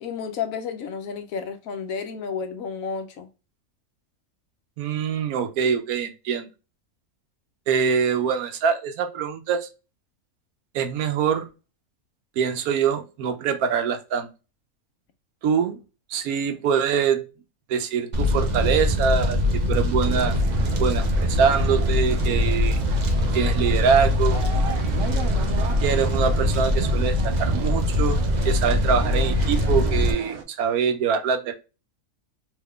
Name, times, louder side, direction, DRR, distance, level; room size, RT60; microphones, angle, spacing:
voice 1, 0.0-3.3, left 6 dB, 70° left, 1.0 m, -31 dB
voice 2, 4.8-6.5 7.7-9.7 10.7-11.5 12.4-14.3 15.4-15.8 16.1-17.2 17.7-20.3 20.8-22.8 23.3-24.4 25.8-31.5, right 7 dB, 85° right, 1.1 m, -24 dB
Fire, 18.1-30.1, left 1 dB, 45° right, 0.6 m, -22 dB
sound 1, 20.0-30.4, right 5 dB, 65° right, 1.0 m, -37 dB
3.5 x 3.1 x 2.3 m
omnidirectional pair, 1.5 m